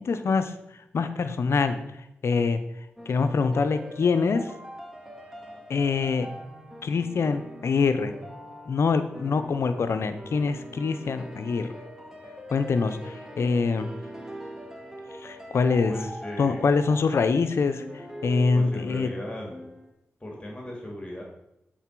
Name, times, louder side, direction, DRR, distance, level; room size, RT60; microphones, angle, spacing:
voice 1, 0.0-0.5 0.9-1.8 2.2-2.6 3.1-4.5 5.7-6.3 6.8-8.1 8.7-11.7 12.5-13.9 15.2-15.9 16.4-19.1, left 4 dB, 70° left, 10 dB, 0.6 m, -24 dB
sound 1, 3.0-19.9, equal, 10° right, 1.5 m, -42 dB
voice 2, 15.9-16.8 18.5-19.6 20.2-21.2, left 1 dB, 20° left, -1 dB, 2.3 m, -37 dB
8.0 x 4.1 x 4.6 m, 0.86 s
supercardioid pair, 40°, 5 cm